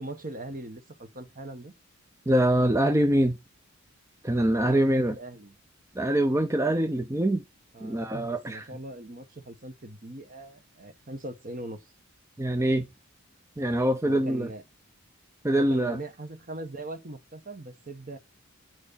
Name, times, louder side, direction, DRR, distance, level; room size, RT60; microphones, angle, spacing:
voice 1, 0.0-1.7 4.4-5.5 7.7-11.8 14.1-14.6 15.5-18.2, right 2 dB, 40° right, 1.2 m, -40 dB
voice 2, 2.3-3.4 4.2-5.1 6.0-7.4 7.8-8.7 12.4-12.9 13.6-14.5 15.4-16.0, right 1 dB, 15° right, 0.6 m, -24 dB
8.2 x 6.3 x 4.1 m
head